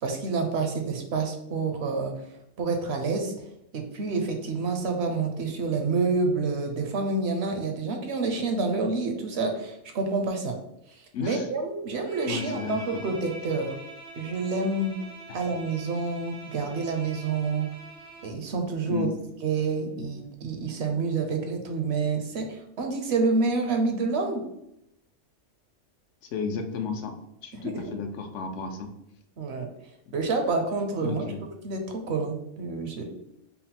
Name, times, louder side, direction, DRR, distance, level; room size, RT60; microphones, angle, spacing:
voice 1, 0.0-2.1 2.6-3.3 3.7-10.6 10.9-13.8 14.2-15.0 15.3-17.7 18.2-19.1 19.4-24.4 27.5-27.7 29.4-29.7 30.1-31.3 31.6-33.0, right 4 dB, 65° right, 4 dB, 0.8 m, -28 dB
voice 2, 11.1-11.5 12.3-13.0 15.3-15.4 18.9-19.1 26.3-27.1 27.4-28.9 31.0-31.4, left 5 dB, 75° left, 4 dB, 0.8 m, -33 dB
Bowed string instrument, 12.0-18.4, right 2 dB, 45° right, 0.4 m, -45 dB
3.8 x 2.1 x 4.1 m, 0.81 s
omnidirectional pair, 1.3 m